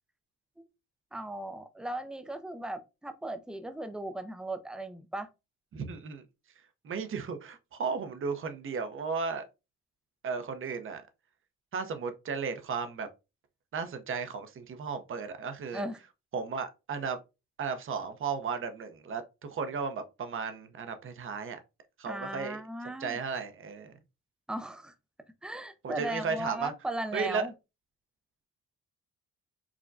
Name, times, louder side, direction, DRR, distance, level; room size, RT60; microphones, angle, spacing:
voice 1, 1.1-5.3 15.7-16.0 22.1-23.2 24.5-24.9 25.4-27.5, right 1 dB, 5° right, 0.5 m, -37 dB
voice 2, 5.7-6.2 6.8-9.4 10.2-11.0 11.7-13.1 13.7-15.8 16.3-17.2 17.6-19.2 19.5-21.6 22.0-23.9 25.8-26.7 27.1-27.5, right 5 dB, 45° right, 0.7 m, -35 dB
4.9 x 2.1 x 2.5 m
cardioid pair, 90°, 30 cm